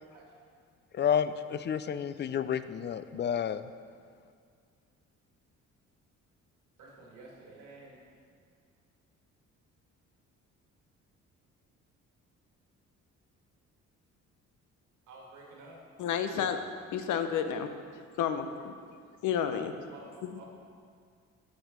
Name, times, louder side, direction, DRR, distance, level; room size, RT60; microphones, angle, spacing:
voice 1, 0.9-3.6, left 8 dB, 35° left, 13 dB, 0.4 m, -30 dB
voice 2, 6.8-8.0 8.3-8.4 15.1-15.8 19.9-20.5, right 2 dB, 85° right, -3 dB, 2.0 m, -51 dB
voice 3, 16.0-16.6 16.9-17.7 18.2-18.7 19.2-19.7 20.2-20.3, left 8 dB, 80° left, 8 dB, 0.7 m, -30 dB
6.7 x 6.4 x 5.9 m, 2.2 s
cardioid pair, 90°, 30 cm